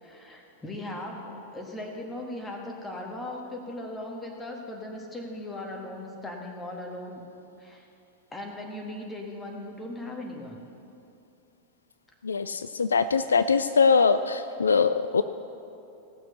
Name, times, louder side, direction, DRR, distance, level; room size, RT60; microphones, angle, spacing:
voice 1, 0.0-7.2 7.6-7.9 8.3-10.6, left 1 dB, 15° left, 1 dB, 1.8 m, -38 dB
voice 2, 12.2-15.2, left 5 dB, 75° left, 12 dB, 0.3 m, -22 dB
17.0 x 6.4 x 6.7 m, 2.7 s
figure-of-eight pair, 90°, 0 cm